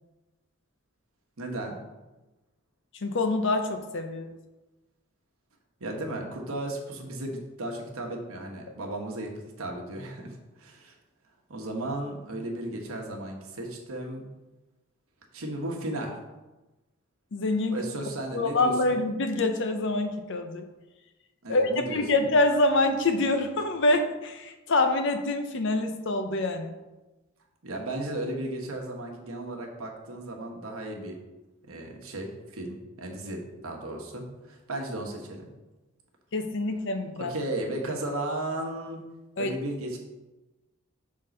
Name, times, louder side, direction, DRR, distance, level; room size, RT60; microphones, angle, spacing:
voice 1, 1.4-1.8 5.8-10.9 11.5-14.2 15.3-16.2 17.7-19.0 21.4-22.2 27.6-31.2 31.7-35.5 37.1-39.0 39.4-40.0, right 1 dB, 85° right, 1 dB, 1.2 m, -35 dB
voice 2, 3.0-4.3 17.3-17.8 18.3-20.6 21.5-26.7 36.3-37.3 39.4-39.5, left 2 dB, 60° left, 7 dB, 0.7 m, -26 dB
6.2 x 3.8 x 5.1 m, 1.1 s
head